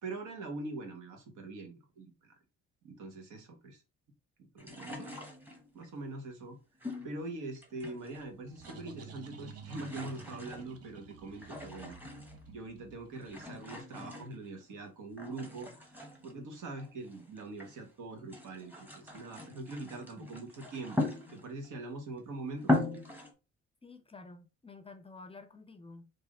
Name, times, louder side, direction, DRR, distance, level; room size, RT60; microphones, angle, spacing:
voice 1, 0.0-2.3 2.8-3.8 4.4-5.2 5.7-6.6 7.0-12.0 12.5-22.7, right 2 dB, 80° right, 1.2 m, -43 dB
sound 1, 4.6-5.9 6.8-8.3 8.5-9.2 9.4-12.5 13.2-14.8 15.2-17.8 18.2-21.7 22.2-22.3 22.6-23.3, left 2 dB, 5° right, 1.0 m, -39 dB
sound 2, 8.3-13.7, right 7 dB, 55° right, 0.7 m, -52 dB
voice 2, 23.8-26.1, left 3 dB, 20° left, 0.5 m, -51 dB
3.3 x 2.7 x 3.6 m
cardioid pair, 90°, 30 cm